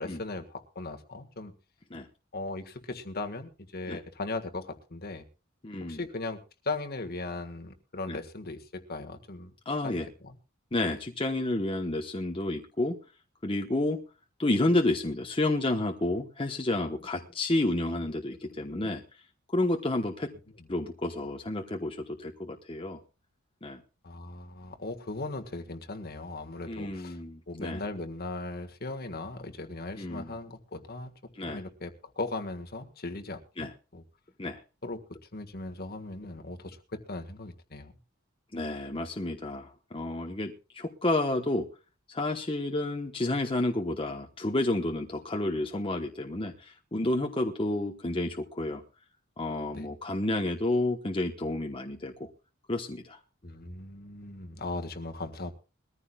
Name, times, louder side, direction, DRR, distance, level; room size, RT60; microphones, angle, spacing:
voice 1, 0.0-1.5 2.3-5.2 5.8-6.4 6.6-9.5 9.8-10.0 10.2-10.4 24.0-27.2 27.5-31.1 31.5-34.0 34.8-35.0 35.3-37.9 49.7-49.9 53.4-55.5, left 2 dB, 50° left, 6 dB, 1.7 m, -38 dB
voice 2, 5.6-6.0 8.1-8.2 9.6-10.1 10.7-13.0 13.4-14.0 14.4-19.0 19.5-20.3 20.7-23.0 23.6-23.8 26.7-27.8 30.0-30.4 31.3-31.6 33.6-33.7 34.4-34.6 38.5-41.7 42.1-48.8 49.4-52.3 52.7-53.2, left 2 dB, 25° left, 3 dB, 1.2 m, -30 dB
22.0 x 14.5 x 2.4 m, 0.32 s
head